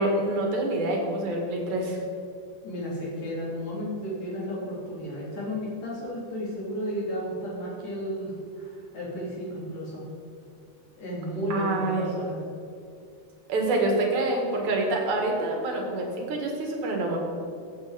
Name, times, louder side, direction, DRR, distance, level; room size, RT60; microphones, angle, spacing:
voice 1, 0.0-2.0 11.5-12.2 13.5-17.2, right 2 dB, 55° right, 1 dB, 2.8 m, -26 dB
voice 2, 2.6-10.0 11.0-12.4, equal, 45° left, -5 dB, 4.3 m, -33 dB
14.5 x 9.1 x 5.1 m, 2.4 s
omnidirectional pair, 4.5 m